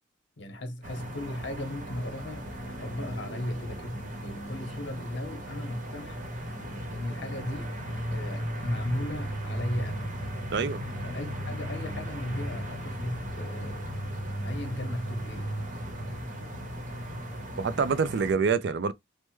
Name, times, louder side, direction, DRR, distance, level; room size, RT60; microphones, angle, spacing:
voice 1, 0.4-6.2 6.9-7.7 8.1-10.1 11.0-13.9 14.4-15.6, left 1 dB, 60° left, 0.9 m, -36 dB
sound 1, 0.8-18.3, equal, 40° right, 0.9 m, -36 dB
voice 2, 17.6-18.9, right 5 dB, 60° right, 0.4 m, -26 dB
3.3 x 2.1 x 3.1 m
head